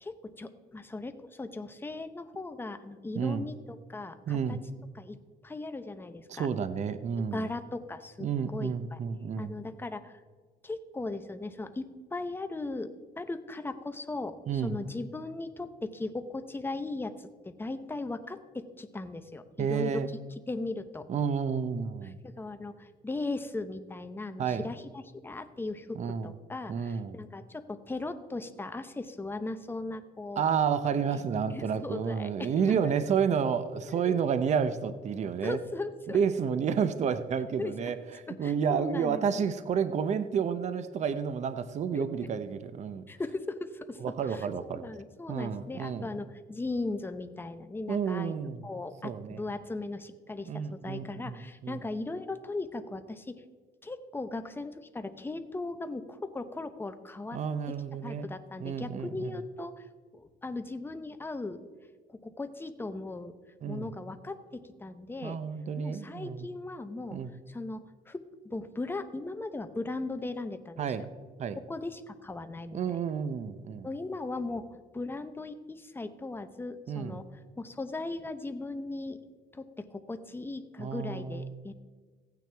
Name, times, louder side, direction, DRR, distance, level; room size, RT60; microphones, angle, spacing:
voice 1, 0.0-4.6 5.0-5.2 5.4-6.5 7.3-9.0 9.4-10.2 10.6-20.0 20.5-21.1 22.2-30.4 31.5-32.9 33.9-34.2 35.4-36.2 37.6-37.9 38.3-39.5 41.9-42.3 43.1-44.0 44.3-48.3 48.6-53.4 53.8-57.4 58.0-59.9 60.1-61.6 62.1-63.3 63.7-65.4 65.8-67.2 67.5-70.9 71.7-72.8 73.8-77.2 77.6-79.2 79.5-81.7, left 2 dB, 15° left, 9 dB, 0.8 m, -38 dB
voice 2, 4.3-4.6 6.3-7.5 8.2-9.6 14.5-14.8 19.6-20.1 21.1-22.2 24.4-24.7 25.9-26.3 26.7-27.2 30.4-35.6 36.1-43.0 44.0-44.8 45.3-46.1 47.9-48.6 49.0-49.4 50.4-51.8 57.3-58.3 58.6-59.4 63.6-63.9 65.2-66.5 67.1-67.3 70.8-71.1 71.4-71.6 72.7-73.9 76.9-77.2 80.8-81.7, right 7 dB, 45° right, 12 dB, 0.7 m, -30 dB
15.0 x 9.2 x 3.4 m, 1.4 s
cardioid pair, 110°, 17 cm